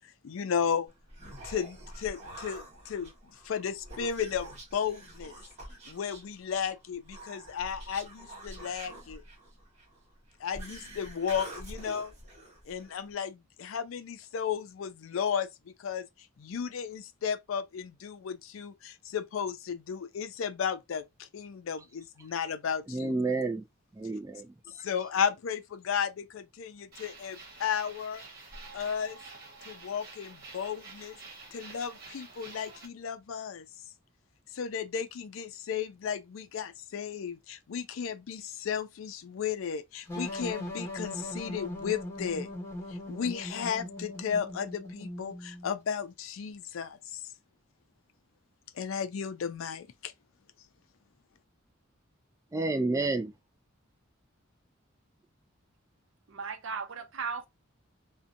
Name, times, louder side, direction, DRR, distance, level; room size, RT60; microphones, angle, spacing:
voice 1, 0.2-0.9 1.4-3.1 3.4-5.3 5.9-9.2 10.4-12.1 12.7-16.1 16.4-23.1 24.8-28.2 28.7-29.2 29.7-31.2 31.5-33.7 34.5-42.5 42.9-47.2 48.8-50.1, left 7 dB, 85° left, 0.4 m, -34 dB
Human voice, 0.9-13.1, right 1 dB, 35° right, 1.3 m, -47 dB
voice 2, 22.9-23.6 24.0-24.5 52.5-53.3, right 3 dB, 15° right, 0.3 m, -30 dB
sound 1, 26.9-32.9, right 3 dB, 50° right, 1.1 m, -49 dB
sound 2, 40.1-45.7, left 1 dB, 15° left, 1.2 m, -39 dB
voice 3, 56.3-57.5, right 5 dB, 70° right, 0.6 m, -36 dB
2.6 x 2.2 x 2.5 m
head